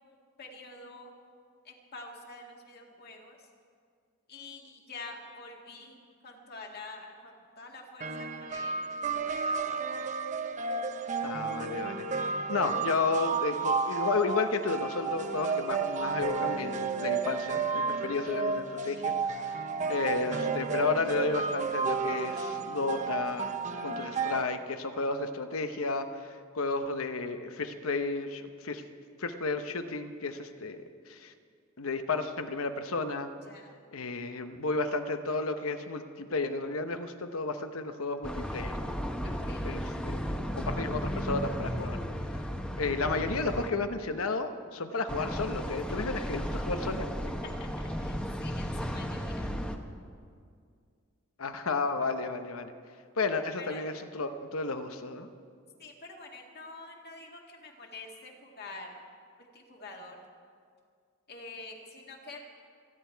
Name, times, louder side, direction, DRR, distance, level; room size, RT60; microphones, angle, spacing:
voice 1, 0.1-1.1 1.6-3.4 4.3-6.0 6.2-10.0 33.5-33.7 39.2-39.6 47.6-49.5 53.6-53.9 55.8-59.0 59.5-60.2 61.3-62.4, left 3 dB, 50° left, 1 dB, 2.0 m, -47 dB
sound 1, 8.0-24.4, right 4 dB, 35° right, 0.8 m, -32 dB
voice 2, 11.2-12.1 12.5-19.1 19.4-19.6 19.9-23.5 23.8-28.8 29.2-31.3 31.8-33.3 33.9-38.7 39.6-40.2 40.5-42.0 42.8-47.1 51.4-52.7 53.2-55.3, left 3 dB, 75° left, 8 dB, 1.0 m, -32 dB
sound 2, 38.2-43.7 45.1-49.8, equal, 5° left, 0.9 m, -34 dB
28.0 x 10.5 x 4.6 m, 2.2 s
head